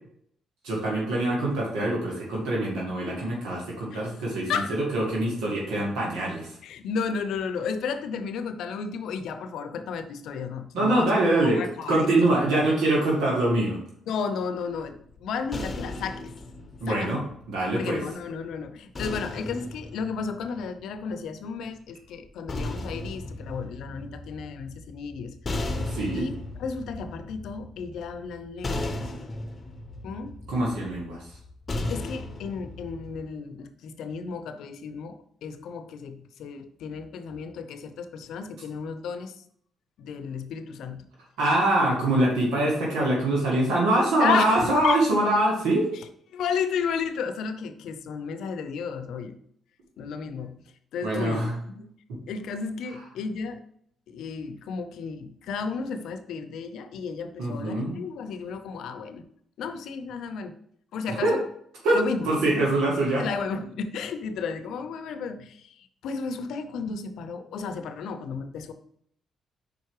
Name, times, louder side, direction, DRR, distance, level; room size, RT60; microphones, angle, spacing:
voice 1, 0.6-6.5 10.7-11.6 11.9-13.8 16.8-17.2 17.5-18.0 25.9-26.2 30.5-31.3 41.4-45.9 51.0-51.5 52.1-52.2 57.4-58.0 61.2-61.4 61.8-63.2, right 1 dB, 85° right, 2.0 m, -24 dB
voice 2, 6.6-11.2 11.5-12.7 14.1-16.3 16.9-17.2 17.7-25.3 26.1-29.0 30.0-30.3 31.9-39.4 40.0-41.0 44.2-45.0 45.9-46.0 46.3-49.4 50.0-50.6 50.9-51.9 52.3-53.6 54.1-59.3 59.6-60.6 60.9-61.4 61.9-62.3 63.2-68.7, left 5 dB, 80° left, 0.6 m, -33 dB
sound 1, 14.7-18.0 18.9-21.2 22.2-33.2, left 2 dB, 30° left, 0.9 m, -36 dB
5.2 x 4.6 x 4.8 m
cardioid pair, 90°, 0 cm